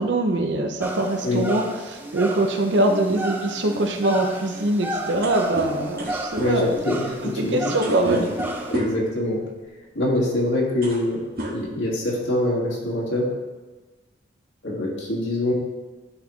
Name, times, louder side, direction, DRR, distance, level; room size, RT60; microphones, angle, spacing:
voice 1, 0.0-6.7 7.2-8.4, right 2 dB, 70° right, 3 dB, 0.7 m, -23 dB
sound 1, 0.8-8.8, right 1 dB, 10° right, 0.5 m, -33 dB
sound 2, 5.2-9.1 10.1-10.3 10.6-11.1 11.4-12.2, right 1 dB, 55° right, 1.2 m, -33 dB
voice 2, 6.4-8.2 8.7-9.4 9.9-13.3 14.6-15.5, left 1 dB, 80° left, -4 dB, 1.9 m, -24 dB
11.5 x 4.2 x 3.1 m, 1.2 s
head